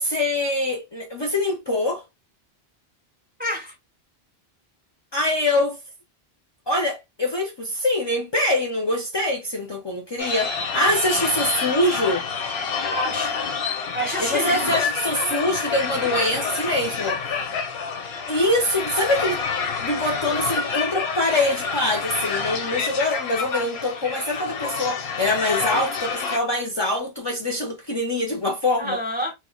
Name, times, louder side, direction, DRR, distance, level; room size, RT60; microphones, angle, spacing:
voice 1, 0.0-2.0 5.1-5.8 6.7-12.2 14.2-17.6 18.3-19.4 19.8-29.0, left 1 dB, 40° left, 0.4 m, -24 dB
voice 2, 3.4-3.8 12.9-13.4 13.9-14.8 16.0-16.3 28.8-29.3, equal, 10° right, 0.8 m, -28 dB
sound 1, 10.2-26.4, left 5 dB, 85° left, 0.8 m, -28 dB
2.3 x 2.0 x 3.6 m
omnidirectional pair, 1.0 m